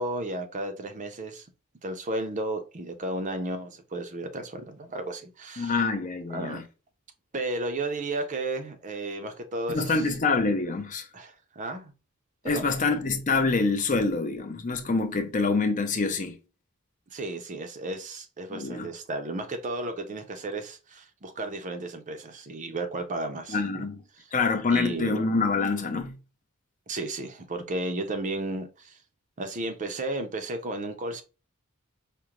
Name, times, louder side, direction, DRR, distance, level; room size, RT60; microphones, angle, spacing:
voice 1, 0.0-1.5 1.8-5.8 6.3-6.6 7.3-10.1 11.1-11.9 12.4-12.7 17.1-23.9 24.2-24.3 24.7-25.2 26.9-29.0 29.4-31.2, right 2 dB, 35° right, 0.6 m, -33 dB
voice 2, 5.6-6.6 9.7-11.1 12.4-16.4 18.5-18.9 23.5-24.0 24.3-26.1, left 4 dB, 35° left, 0.5 m, -26 dB
5.0 x 2.1 x 2.9 m
head